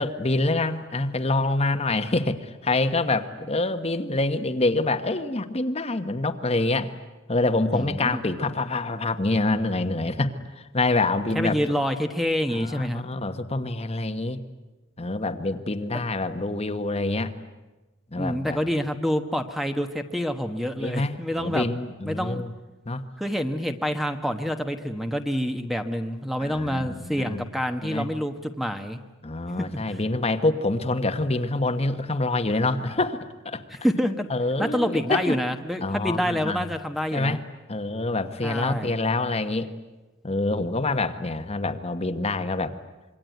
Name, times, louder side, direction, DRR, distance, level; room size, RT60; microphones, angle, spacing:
voice 1, 0.0-6.9 7.3-11.5 12.5-14.4 15.0-17.3 18.1-18.6 20.8-22.5 22.9-23.0 26.4-27.4 27.8-28.1 29.2-33.6 34.3-35.4 35.8-36.6 37.1-37.4 37.7-39.7 40.2-42.7, left 2 dB, 30° left, 8 dB, 1.2 m, -26 dB
voice 2, 7.7-8.2 11.3-13.0 15.9-16.0 18.1-21.7 22.0-22.4 23.2-29.0 29.9-30.0 33.7-34.3 34.6-37.4 38.4-39.0, equal, ahead, 6 dB, 1.2 m, -27 dB
26.5 x 23.0 x 9.3 m, 1.1 s
head